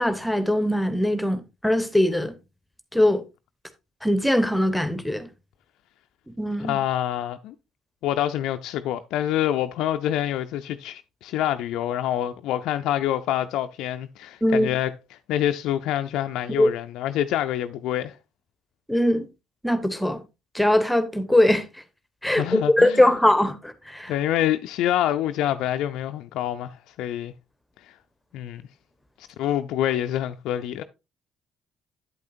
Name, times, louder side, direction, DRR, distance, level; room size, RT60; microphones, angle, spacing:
voice 1, 0.0-2.3 2.9-3.2 4.0-5.3 6.4-6.8 14.4-14.7 16.6-16.7 18.9-19.3 19.6-20.2 20.5-21.7 22.2-24.1, left 1 dB, 5° left, 1.0 m, -21 dB
voice 2, 6.6-7.5 8.0-18.1 22.2-23.0 24.1-27.3 28.3-28.6 29.2-30.8, left 12 dB, 70° left, 0.4 m, -26 dB
8.4 x 8.2 x 2.6 m
hypercardioid pair, 55°, 0 cm